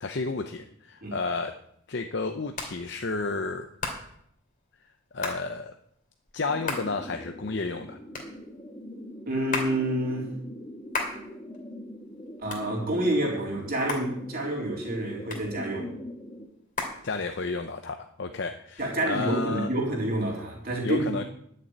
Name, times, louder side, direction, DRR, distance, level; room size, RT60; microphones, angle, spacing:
voice 1, 0.0-1.6 1.9-3.7 5.1-5.7 6.3-8.0 17.0-19.7 20.8-21.2, left 3 dB, 55° left, 6 dB, 0.7 m, -31 dB
Hands, 1.1-17.7, left 3 dB, 40° left, 2.6 m, -39 dB
sound 1, 6.5-16.5, equal, 20° left, 1.5 m, -42 dB
voice 2, 9.3-10.3 12.4-15.9 18.8-21.0, right 1 dB, 45° right, -2 dB, 3.9 m, -28 dB
11.5 x 6.8 x 8.7 m, 0.72 s
head